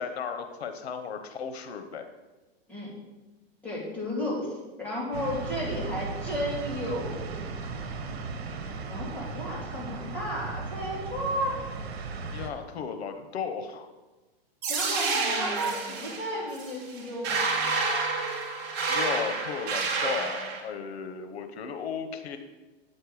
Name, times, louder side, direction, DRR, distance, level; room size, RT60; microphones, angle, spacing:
voice 1, 0.0-2.1 12.3-13.9 18.9-22.4, left 6 dB, 85° left, 8 dB, 1.0 m, -35 dB
voice 2, 3.6-7.4 8.9-11.6 14.7-17.7, equal, 5° left, -7 dB, 2.9 m, -33 dB
sound 1, 5.1-12.5, right 4 dB, 75° right, 1.4 m, -36 dB
sound 2, 14.6-20.6, right 4 dB, 35° right, 1.9 m, -29 dB
9.0 x 6.7 x 4.8 m, 1.2 s
hypercardioid pair, 150°, 31 cm